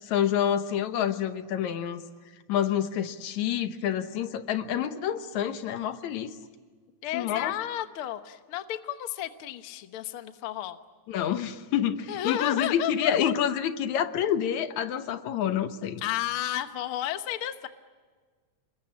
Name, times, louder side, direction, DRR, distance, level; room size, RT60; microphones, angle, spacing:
voice 1, 0.0-2.0 2.5-6.3 7.1-7.5 11.1-16.0, left 9 dB, 75° left, 10 dB, 2.4 m, -28 dB
voice 2, 7.0-10.8 12.1-13.3 16.0-17.7, left 12 dB, 55° left, 9 dB, 1.7 m, -32 dB
28.0 x 23.0 x 8.6 m, 1.5 s
omnidirectional pair, 3.4 m